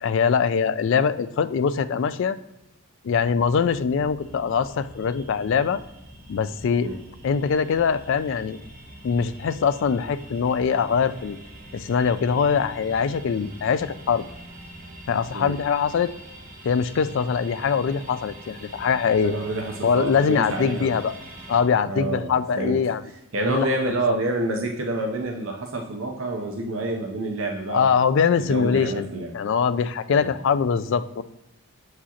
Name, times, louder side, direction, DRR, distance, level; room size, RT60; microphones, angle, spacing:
voice 1, 0.0-2.4 3.0-5.8 6.3-6.9 7.2-8.6 9.0-11.4 11.7-14.2 15.1-16.1 16.6-19.3 19.8-21.1 21.5-23.0 23.5-23.7 24.1-24.2 27.7-31.2, left 6 dB, 55° left, 13 dB, 0.3 m, -23 dB
sound 1, 3.2-21.4, equal, 30° left, 0.7 m, -49 dB
sound 2, 4.2-21.6, right 1 dB, 40° right, 0.9 m, -45 dB
voice 2, 19.2-21.0 21.8-22.8 23.3-28.0 28.3-29.3 30.1-30.3, right 2 dB, 65° right, 2 dB, 0.6 m, -28 dB
6.8 x 4.8 x 2.8 m, 0.94 s
head